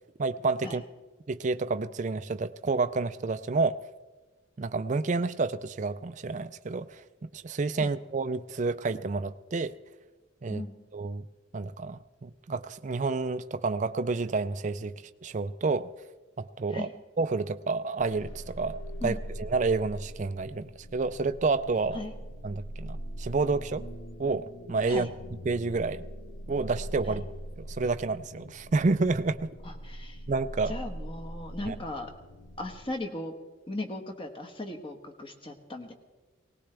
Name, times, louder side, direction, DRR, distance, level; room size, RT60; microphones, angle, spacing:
voice 1, 0.2-0.8 1.3-3.8 4.6-9.7 10.4-10.6 10.9-11.2 11.5-14.9 15.2-15.9 16.4-16.9 17.2-22.0 22.4-23.8 24.2-25.1 25.5-26.0 26.5-27.2 27.7-29.5 30.3-30.7 31.7-31.8, right 3 dB, 40° right, 11 dB, 0.4 m, -29 dB
sound 1, 18.0-32.9, equal, 80° left, 1.2 m, -42 dB
voice 2, 29.6-30.2 30.7-32.1 32.6-33.3 33.7-35.9, left 2 dB, 25° left, 3 dB, 1.3 m, -37 dB
20.5 x 18.5 x 3.4 m, 1.3 s
head